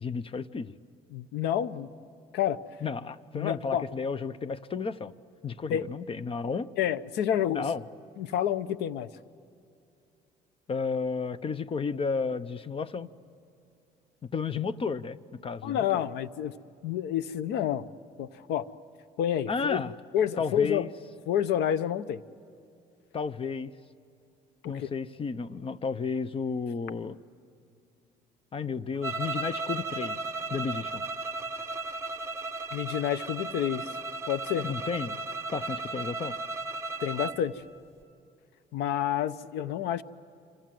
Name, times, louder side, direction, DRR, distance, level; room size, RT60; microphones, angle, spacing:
voice 1, 0.0-0.7 2.8-5.1 5.4-6.7 7.5-7.8 10.7-13.1 14.2-16.0 19.5-19.9 20.4-20.9 23.1-23.7 24.7-27.2 28.5-30.2 30.5-31.0 34.6-35.2 35.5-36.4, left 5 dB, 35° left, 16 dB, 0.8 m, -32 dB
voice 2, 1.1-1.9 2.3-2.6 3.3-3.9 5.7-5.8 6.8-7.7 8.2-9.1 15.6-16.5 16.8-17.9 18.2-18.7 19.2-19.8 20.1-20.9 21.3-22.2 24.6-24.9 32.7-33.9 34.3-34.7 37.0-37.6 38.7-40.0, left 10 dB, 85° left, 16 dB, 0.9 m, -29 dB
sound 1, 29.0-37.4, right 3 dB, 15° right, 1.2 m, -35 dB
26.5 x 26.5 x 7.8 m, 2.6 s
cardioid pair, 110°, 17 cm